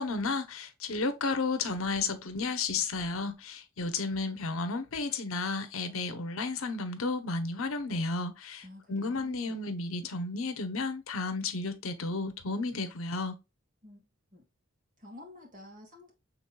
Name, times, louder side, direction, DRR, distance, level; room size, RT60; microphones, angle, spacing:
voice 1, 0.0-8.6 8.9-13.4, left 3 dB, 85° left, 0.8 m, -32 dB
voice 2, 8.6-9.6 13.8-14.1 14.3-14.5 15.0-16.1, left 1 dB, 40° right, 2.0 m, -50 dB
6.0 x 3.6 x 2.3 m
head